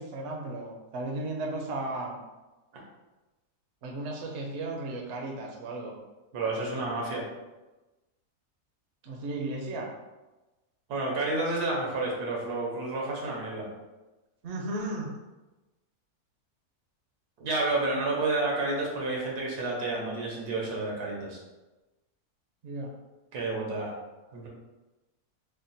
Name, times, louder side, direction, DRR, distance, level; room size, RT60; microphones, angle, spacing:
voice 1, 0.0-2.2 3.8-5.9 9.0-9.9 14.4-15.1 22.6-22.9, right 2 dB, 60° right, 0 dB, 0.8 m, -35 dB
voice 2, 6.3-7.2 10.9-13.7 17.4-21.4 23.3-23.9 24.3-24.5, right 2 dB, 85° right, -2 dB, 1.5 m, -30 dB
3.6 x 2.2 x 4.0 m, 1.1 s
omnidirectional pair, 1.6 m